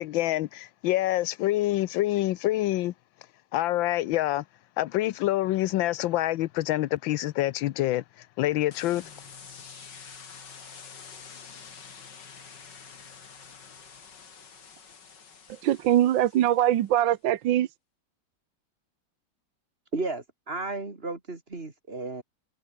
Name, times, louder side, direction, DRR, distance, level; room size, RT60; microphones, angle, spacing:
voice 1, 0.0-2.9 3.5-4.4 4.8-9.1, left 15 dB, 85° left, 1.4 m, -26 dB
sound 1, 8.7-16.9, left 6 dB, 65° left, 2.9 m, -47 dB
voice 2, 15.5-17.7, right 12 dB, 80° right, 1.6 m, -22 dB
voice 3, 19.9-22.2, right 3 dB, 30° right, 3.0 m, -33 dB
omnidirectional pair, 2.1 m